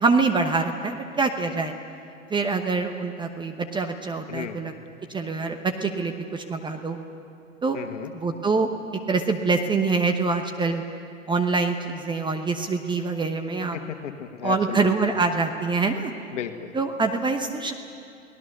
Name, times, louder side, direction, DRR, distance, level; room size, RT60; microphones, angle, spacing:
voice 1, 0.0-1.7 2.3-4.7 5.1-7.0 7.6-7.8 8.1-8.7 9.1-10.8 11.3-13.8 14.4-16.1 16.7-17.7, right 4 dB, 10° right, 6 dB, 1.0 m, -25 dB
voice 2, 4.3-4.6 7.7-8.1 13.7-15.1 16.3-16.7, left 8 dB, 65° left, 7 dB, 1.8 m, -34 dB
29.5 x 19.0 x 6.7 m, 2.6 s
hypercardioid pair, 110°, 39 cm